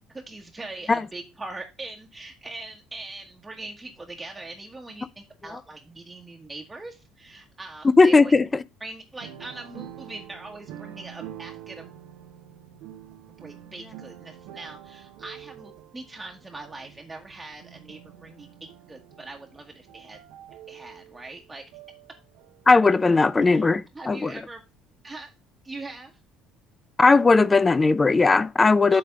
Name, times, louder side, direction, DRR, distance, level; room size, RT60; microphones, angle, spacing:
voice 1, 0.1-8.3 8.8-11.9 13.4-20.2 20.7-21.6 23.5-23.7 23.9-24.6 25.0-25.3 25.6-26.1 28.9-29.0, right 2 dB, 15° right, 1.3 m, -41 dB
voice 2, 7.8-8.5 22.7-24.4 27.0-29.0, left 3 dB, 20° left, 0.4 m, -18 dB
sound 1, 9.2-22.8 23.1-23.2, right 11 dB, 65° right, 0.8 m, -46 dB
8.0 x 3.3 x 6.3 m
figure-of-eight pair, 55°, 0 cm